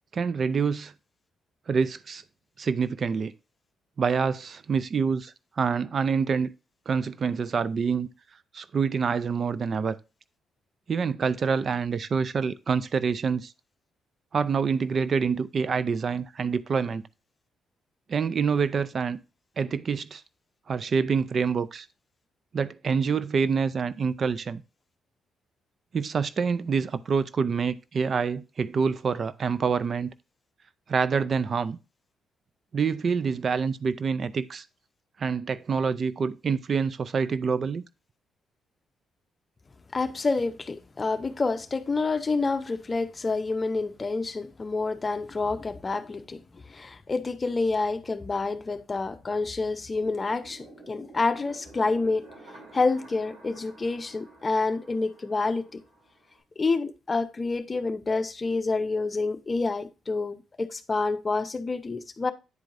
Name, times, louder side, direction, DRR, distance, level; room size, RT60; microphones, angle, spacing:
voice 1, 0.1-0.9 1.7-2.2 2.6-3.3 4.0-6.5 6.9-8.1 8.5-10.0 10.9-13.5 14.3-17.0 18.1-19.2 19.6-20.2 20.7-21.9 22.5-24.6 25.9-30.1 30.9-31.8 32.7-34.6 35.2-37.8, right 5 dB, 50° right, 0.4 m, -26 dB
voice 2, 39.9-52.3 52.7-55.8 56.6-62.3, left 3 dB, 30° left, 0.7 m, -28 dB
sound 1, 49.9-56.4, right 2 dB, 85° right, 4.0 m, -50 dB
9.6 x 4.5 x 2.5 m
cardioid pair, 75°, 0 cm